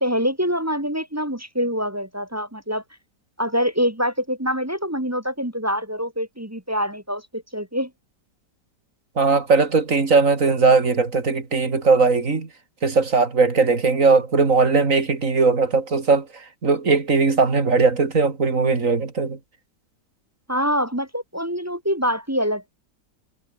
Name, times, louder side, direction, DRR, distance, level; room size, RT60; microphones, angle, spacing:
voice 1, 0.0-2.8 3.4-7.9 20.5-22.7, equal, 10° right, 1.5 m, -25 dB
voice 2, 9.2-12.5 12.8-19.4, right 4 dB, 45° right, 3.2 m, -19 dB
omnidirectional pair, 1.9 m